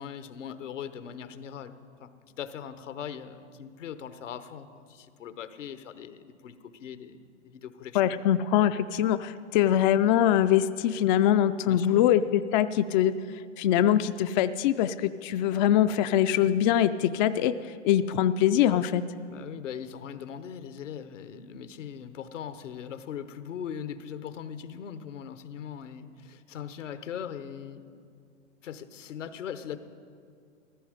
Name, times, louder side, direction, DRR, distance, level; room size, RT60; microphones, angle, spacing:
voice 1, 0.0-1.7 2.0-8.1 11.6-12.1 19.3-27.8 28.6-29.8, left 8 dB, 80° left, 11 dB, 1.0 m, -40 dB
voice 2, 7.9-13.1 13.6-19.0, left 11 dB, 40° left, 11 dB, 0.4 m, -23 dB
15.0 x 14.0 x 5.0 m, 2.2 s
hypercardioid pair, 115°, 37 cm